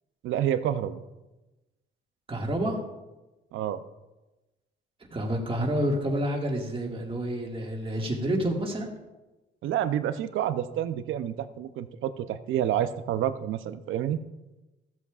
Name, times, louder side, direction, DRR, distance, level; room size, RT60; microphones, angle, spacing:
voice 1, 0.2-1.0 3.5-3.8 9.6-14.2, right 10 dB, 80° right, 12 dB, 0.6 m, -29 dB
voice 2, 2.3-2.8 5.1-8.9, right 1 dB, 25° right, 0 dB, 1.9 m, -28 dB
14.5 x 8.1 x 2.4 m, 1.0 s
cardioid pair, 90°, 20 cm